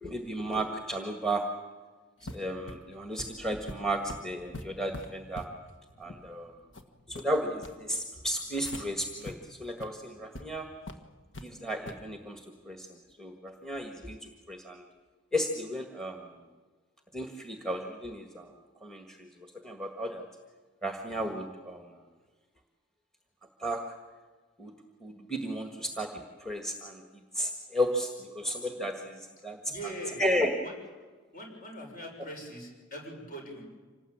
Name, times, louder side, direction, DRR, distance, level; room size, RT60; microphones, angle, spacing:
voice 1, 0.0-1.5 2.2-5.5 6.0-6.5 7.1-10.7 11.4-12.9 13.2-14.9 15.3-16.3 17.1-18.5 18.8-19.3 19.6-20.3 20.8-22.0 23.6-23.9 24.6-24.7 25.0-29.6 30.2-30.5, equal, 5° left, 4 dB, 1.7 m, -34 dB
sound 1, 2.2-8.8 9.2-9.3 9.7-9.9 10.3-10.4 10.9-11.5 11.9-12.1, left 1 dB, 60° left, 1.7 m, -44 dB
voice 2, 29.6-30.3 30.6-30.7 31.3-33.6, right 1 dB, 45° left, 1 dB, 6.8 m, -42 dB
26.5 x 19.0 x 8.8 m, 1.4 s
head